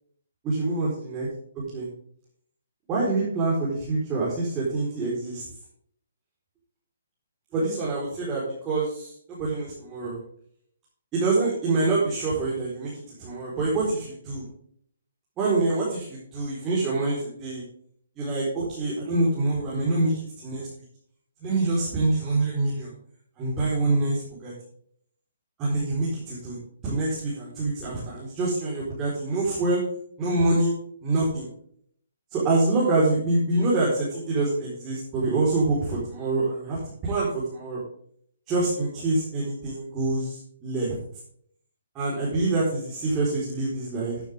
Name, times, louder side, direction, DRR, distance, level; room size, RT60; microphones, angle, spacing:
voice 1, 0.4-1.3 1.7-1.9 2.9-5.4 7.5-10.2 11.1-12.9 13.2-14.4 15.4-17.6 18.2-20.7 21.4-22.9 23.4-24.5 25.6-29.8 30.2-30.7 31.0-31.5 32.3-37.8 38.5-41.0 41.9-44.2, right 2 dB, 20° right, -7 dB, 4.6 m, -26 dB
15.0 x 9.2 x 3.7 m, 0.64 s
figure-of-eight pair, 135°, 0 cm